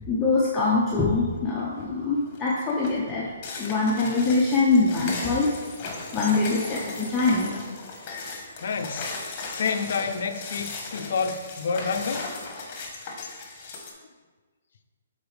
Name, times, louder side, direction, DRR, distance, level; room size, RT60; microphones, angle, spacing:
voice 1, 0.1-3.3 3.6-5.5 6.1-7.5, left 3 dB, 15° left, -6 dB, 0.8 m, -23 dB
sound 1, 1.5-1.9 2.3-13.9, left 3 dB, 35° left, 1.2 m, -37 dB
voice 2, 8.6-9.1 9.5-12.3, left 5 dB, 65° left, 7 dB, 0.6 m, -29 dB
8.0 x 4.1 x 3.4 m, 1.4 s
hypercardioid pair, 150°, 0 cm